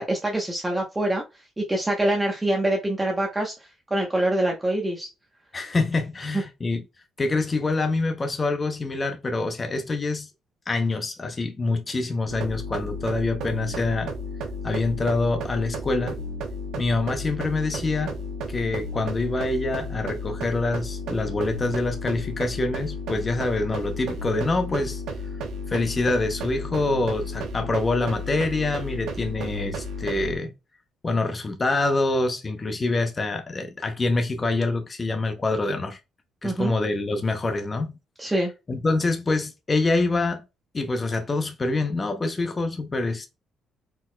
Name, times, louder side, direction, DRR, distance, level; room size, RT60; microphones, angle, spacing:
voice 1, 0.0-3.5 3.9-5.1 36.4-36.7 38.2-38.5, right 1 dB, 10° right, 0.9 m, -25 dB
voice 2, 5.5-6.8 7.2-10.3 10.7-14.1 14.6-16.2 16.8-18.2 18.5-25.0 25.7-30.5 31.0-36.0 36.4-37.9 38.7-40.4 40.7-43.3, left 2 dB, 25° left, 0.7 m, -25 dB
sound 1, 12.3-30.3, left 1 dB, 75° right, 1.2 m, -33 dB
4.5 x 4.0 x 2.2 m
cardioid pair, 130°, 0 cm